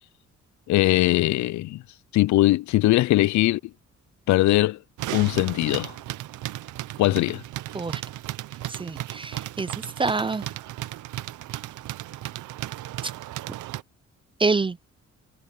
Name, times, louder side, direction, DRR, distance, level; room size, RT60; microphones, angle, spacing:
voice 1, 0.7-1.8 2.1-3.6 4.3-4.8 5.1-5.9 7.0-7.4, left 17 dB, 70° left, 0.4 m, -20 dB
sound 1, 5.0-13.8, right 15 dB, 80° right, 0.8 m, -35 dB
voice 2, 8.7-9.7 10.0-10.5 14.4-14.8, right 3 dB, 15° right, 0.5 m, -26 dB
cardioid pair, 90°, 30 cm